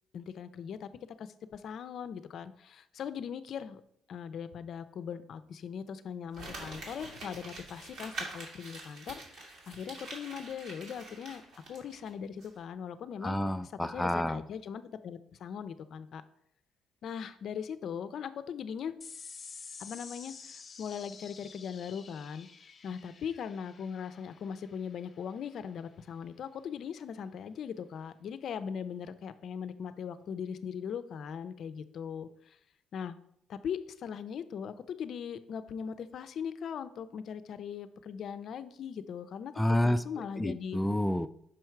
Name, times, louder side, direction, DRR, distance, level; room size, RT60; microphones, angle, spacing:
voice 1, 0.1-0.9 1.2-3.8 4.1-11.4 11.7-13.4 13.8-16.2 17.0-19.0 19.8-22.5 22.8-32.6 32.9-33.2 33.5-39.5 39.8-40.8, left 7 dB, 60° left, 12 dB, 0.5 m, -40 dB
Crumpling crinkling, 6.3-12.1 12.4-12.5, right 2 dB, 70° right, 2.3 m, -45 dB
voice 2, 13.2-14.4 39.6-40.0 40.4-41.3, left 1 dB, 5° left, 12 dB, 0.3 m, -29 dB
sound 1, 19.0-25.8, left 5 dB, 40° left, 0.8 m, -50 dB
6.1 x 4.7 x 4.5 m, 0.71 s
cardioid pair, 95°, 0 cm